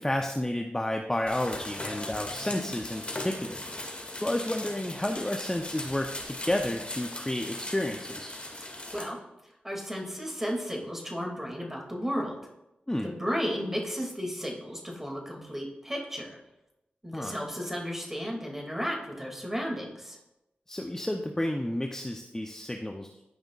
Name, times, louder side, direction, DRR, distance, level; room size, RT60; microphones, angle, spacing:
voice 1, 0.0-3.6 4.2-8.3 12.9-13.1 17.1-17.4 20.7-23.2, left 1 dB, 15° left, 3 dB, 0.7 m, -31 dB
sound 1, 1.3-9.0, left 1 dB, 30° left, 2.2 m, -38 dB
voice 2, 9.6-12.4 13.0-16.4 17.0-20.2, equal, 10° right, 0 dB, 2.5 m, -33 dB
13.0 x 5.1 x 2.5 m, 0.91 s
cardioid pair, 40°, 4 cm